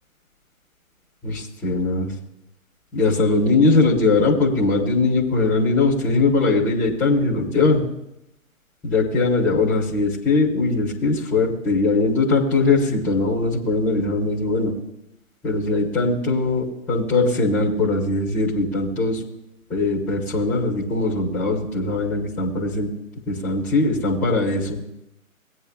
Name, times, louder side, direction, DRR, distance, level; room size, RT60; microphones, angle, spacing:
voice 1, 1.2-2.1 2.9-7.8 8.8-14.7 15.4-19.2 19.7-22.9 23.3-24.8, left 3 dB, 5° left, -5 dB, 1.1 m, -20 dB
18.5 x 9.0 x 2.3 m, 0.82 s
hypercardioid pair, 145°, 42 cm